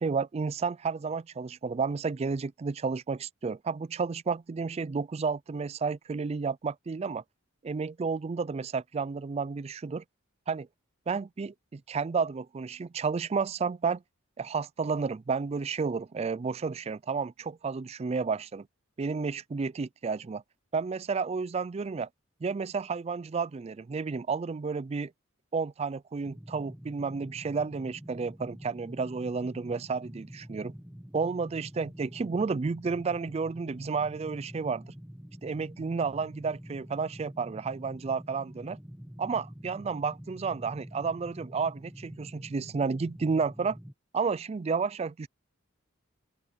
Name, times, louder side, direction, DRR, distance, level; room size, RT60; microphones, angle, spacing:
voice 1, 0.0-7.2 7.6-10.0 10.5-10.7 11.1-14.0 14.4-18.7 19.0-20.4 20.7-22.1 22.4-25.1 25.5-30.7 31.1-34.8 35.4-38.8 39.2-43.8 44.1-45.3, right 5 dB, 30° right, 0.3 m, -31 dB
sound 1, 26.2-43.9, equal, 5° right, 1.0 m, -46 dB
open air
head